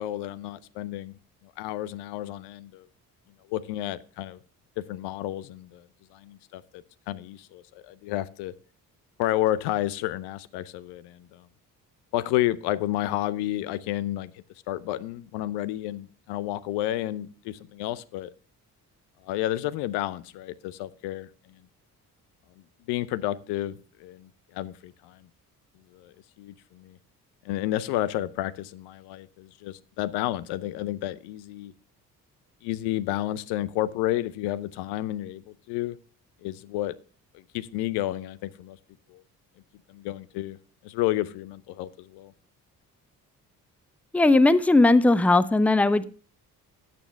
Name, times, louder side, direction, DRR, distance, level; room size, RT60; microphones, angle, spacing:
voice 1, 0.0-2.9 3.5-4.4 4.8-8.5 9.2-11.5 12.1-18.3 19.2-21.6 22.9-25.3 25.9-27.0 27.4-31.7 32.6-36.0 36.4-36.9 37.3-38.8 39.1-39.2 39.9-40.6 40.8-42.3, left 14 dB, 60° left, 16 dB, 0.7 m, -31 dB
voice 2, 44.1-46.0, left 2 dB, 5° left, 15 dB, 0.4 m, -18 dB
10.0 x 9.1 x 3.4 m, 0.42 s
figure-of-eight pair, 45°, 47 cm